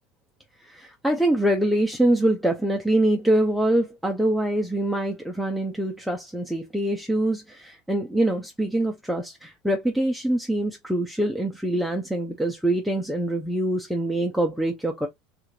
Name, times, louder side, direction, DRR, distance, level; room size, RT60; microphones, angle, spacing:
voice 1, 0.6-15.1, right 1 dB, ahead, 0.5 m, -24 dB
3.3 x 2.3 x 3.1 m
supercardioid pair, 135°, 0 cm